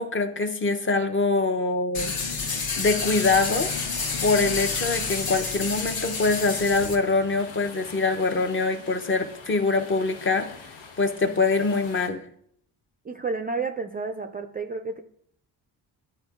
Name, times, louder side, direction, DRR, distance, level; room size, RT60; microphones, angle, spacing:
voice 1, 0.0-2.4 2.8-3.7 4.2-10.5 11.0-12.3, left 3 dB, 30° left, 6 dB, 0.6 m, -24 dB
sound 1, 1.9-6.9, left 4 dB, 55° left, 1.0 m, -29 dB
sound 2, 3.3-12.1, left 5 dB, 90° left, 0.9 m, -44 dB
voice 2, 13.0-15.0, right 4 dB, 25° right, 6 dB, 0.3 m, -31 dB
10.5 x 4.5 x 2.4 m, 0.68 s
cardioid pair, 85°, 43 cm